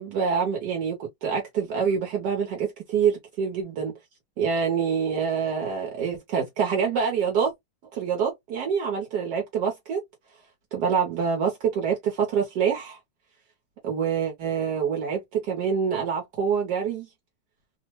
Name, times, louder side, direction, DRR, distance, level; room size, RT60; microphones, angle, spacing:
voice 1, 0.0-3.9 4.4-7.5 7.9-10.0 10.7-13.0 13.8-17.1, right 6 dB, 70° right, 1.3 m, -26 dB
3.1 x 2.1 x 2.8 m
omnidirectional pair, 1.9 m